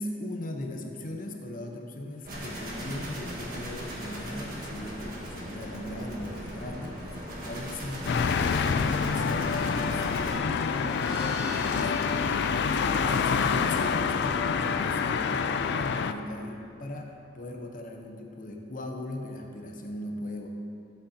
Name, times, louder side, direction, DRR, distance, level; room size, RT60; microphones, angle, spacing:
voice 1, 0.0-10.9 11.5-20.5, left 1 dB, 45° left, 2 dB, 0.8 m, -39 dB
sound 1, 2.2-10.4, equal, 50° right, 1.6 m, -38 dB
sound 2, 8.1-16.1, left 6 dB, 60° left, 0.3 m, -27 dB
sound 3, 10.2-17.3, left 2 dB, 5° right, 1.8 m, -44 dB
11.5 x 8.0 x 2.8 m, 2.7 s
head